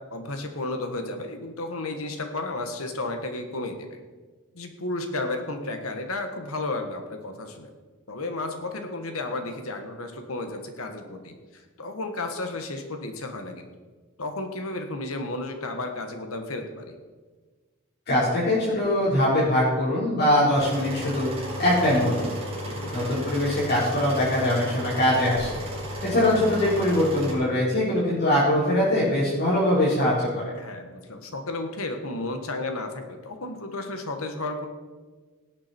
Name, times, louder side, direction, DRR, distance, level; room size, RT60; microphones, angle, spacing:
voice 1, 0.1-4.0 4.5-7.7 8.1-13.7 14.2-17.0 22.6-22.9 30.6-34.7, left 2 dB, 70° left, 6 dB, 1.6 m, -33 dB
voice 2, 18.1-21.3 21.6-22.3 22.9-25.5 26.0-30.4, left 1 dB, 50° left, -10 dB, 4.5 m, -22 dB
sound 1, 20.6-27.3, equal, 30° right, 4.5 m, -34 dB
18.0 x 8.6 x 4.5 m, 1.4 s
head